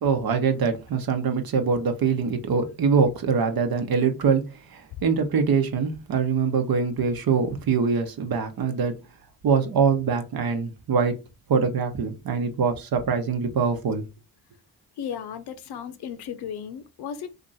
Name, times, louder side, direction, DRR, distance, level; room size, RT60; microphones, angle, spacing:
voice 1, 0.0-4.4 4.7-8.9 9.4-11.1 11.5-14.0, right 5 dB, 60° right, 0.9 m, -23 dB
voice 2, 15.0-17.3, left 8 dB, 75° left, 0.6 m, -35 dB
2.9 x 2.5 x 4.0 m
supercardioid pair, 50°, 40 cm